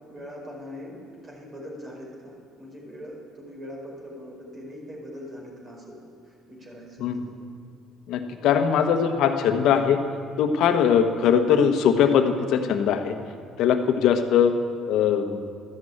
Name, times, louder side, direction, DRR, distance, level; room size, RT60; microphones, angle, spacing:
voice 1, 0.1-6.0 6.2-7.4, equal, 40° right, -2 dB, 5.0 m, -41 dB
voice 2, 8.1-10.0 10.4-13.1 13.6-14.5 14.9-15.5, left 8 dB, 75° left, 7 dB, 1.2 m, -21 dB
12.5 x 11.0 x 8.7 m, 2.2 s
supercardioid pair, 90°, 0 cm